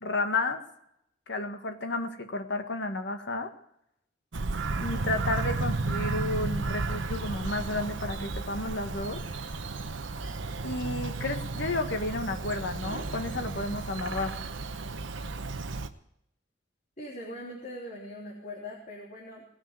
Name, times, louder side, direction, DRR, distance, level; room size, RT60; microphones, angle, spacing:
voice 1, 0.0-0.6 1.3-3.5 4.8-9.2 10.6-14.3, left 2 dB, 65° left, 6 dB, 1.6 m, -32 dB
Bird vocalization bird call bird song, 4.3-15.9, right 3 dB, 75° right, 0.9 m, -33 dB
voice 2, 17.0-19.5, left 1 dB, 40° left, -4 dB, 3.1 m, -41 dB
19.5 x 6.5 x 9.0 m, 0.76 s
head